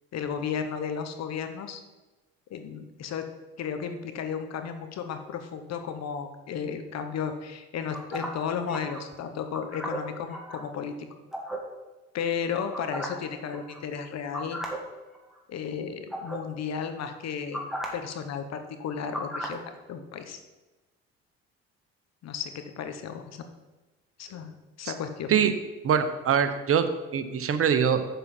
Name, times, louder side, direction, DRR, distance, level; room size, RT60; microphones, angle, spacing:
voice 1, 0.1-1.8 2.5-3.2 3.6-10.9 12.1-14.6 15.5-17.6 17.9-19.6 19.9-20.4 22.2-23.4 24.2-24.5 24.8-25.4, left 7 dB, 60° left, 8 dB, 1.1 m, -34 dB
sound 1, 7.9-9.0 9.5-10.6 11.3-11.6 12.7-13.3 13.5-13.8 14.3-14.8 15.1-15.4 16.1-16.4 17.5-17.9 19.1-19.6, right 1 dB, ahead, 2.1 m, -35 dB
voice 2, 25.8-26.9 27.1-28.0, right 8 dB, 50° right, 9 dB, 0.9 m, -23 dB
7.2 x 7.1 x 4.4 m, 1.1 s
supercardioid pair, 65°, 30 cm